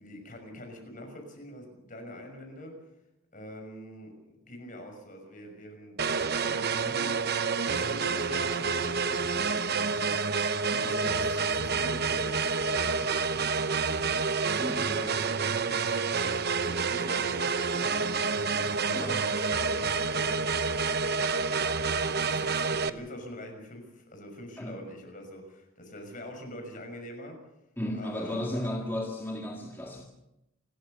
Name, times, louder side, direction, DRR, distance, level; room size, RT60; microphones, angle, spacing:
voice 1, 0.0-2.8 3.3-4.1 4.5-7.1 7.6-10.2 10.8-14.2 14.8-20.4 21.2-27.4 27.9-28.7, equal, 40° left, 3 dB, 6.1 m, -44 dB
sound 1, 6.0-22.9, right 5 dB, 50° right, 0.9 m, -28 dB
voice 2, 14.6-14.9 18.9-19.2 24.6-24.8 27.8-30.0, left 1 dB, 10° left, 0 dB, 2.0 m, -34 dB
28.5 x 13.5 x 6.7 m, 0.88 s
head